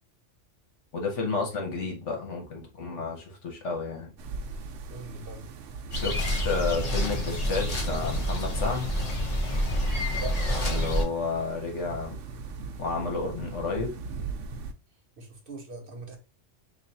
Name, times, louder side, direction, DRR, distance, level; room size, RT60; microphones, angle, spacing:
voice 1, 0.9-4.1 5.9-8.9 10.7-12.2 12.8-13.9, left 4 dB, 75° left, 1.3 m, -31 dB
sound 1, 4.2-14.7, right 4 dB, 80° right, 0.9 m, -40 dB
voice 2, 4.9-5.5 10.1-10.4 15.2-16.2, right 2 dB, 50° right, 1.1 m, -40 dB
sound 2, 5.9-11.0, equal, 35° left, 0.9 m, -28 dB
3.1 x 2.5 x 4.0 m
omnidirectional pair, 1.2 m